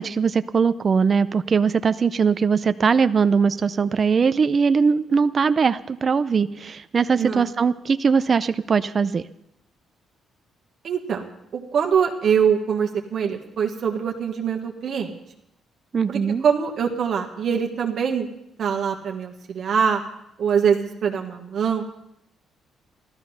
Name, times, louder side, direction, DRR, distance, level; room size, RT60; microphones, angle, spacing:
voice 1, 0.0-9.2 15.9-16.4, right 5 dB, 40° right, 12 dB, 0.5 m, -20 dB
voice 2, 7.2-7.5 10.8-11.3 11.5-15.1 16.1-18.3 18.6-20.0 20.4-21.8, right 7 dB, 60° right, 1 dB, 1.4 m, -23 dB
14.5 x 13.0 x 5.6 m, 0.81 s
cardioid pair, 90°, 0 cm